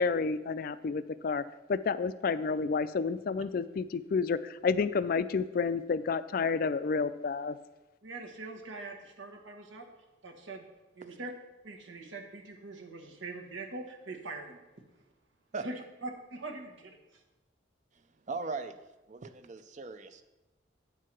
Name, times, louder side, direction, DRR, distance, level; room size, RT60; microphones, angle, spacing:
voice 1, 0.0-1.4 1.7-7.6, left 5 dB, 50° left, 14 dB, 0.3 m, -30 dB
voice 2, 8.0-9.9 10.2-10.6 10.9-11.3 11.6-14.6 15.6-15.8 16.0-17.2, right 2 dB, 80° right, 2 dB, 1.3 m, -43 dB
voice 3, 18.3-18.7 19.1-20.2, right 4 dB, 40° right, 10 dB, 0.5 m, -38 dB
8.8 x 4.6 x 6.0 m, 1.0 s
head